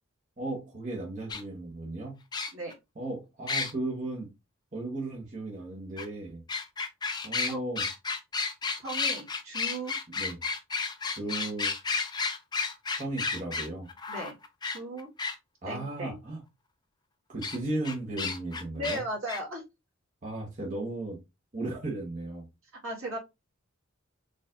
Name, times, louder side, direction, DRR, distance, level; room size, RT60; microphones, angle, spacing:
voice 1, 0.4-2.2 3.0-4.3 4.7-6.4 7.2-7.8 10.1-10.4 11.1-11.7 13.0-13.9 15.6-16.4 17.3-19.1 20.2-21.2 21.5-22.5, right 2 dB, 40° right, 1.1 m, -35 dB
sound 1, 1.3-1.4 2.3-2.7 3.5-3.7 6.0-6.1 6.5-15.3 17.4-17.6 17.8-19.0 19.3-19.4, left 4 dB, 20° left, 0.5 m, -32 dB
voice 2, 8.8-9.9 14.1-14.4 14.6-15.1 15.6-16.2 18.7-19.6 22.8-23.2, right 1 dB, 70° right, 1.9 m, -36 dB
4.3 x 3.3 x 2.5 m
head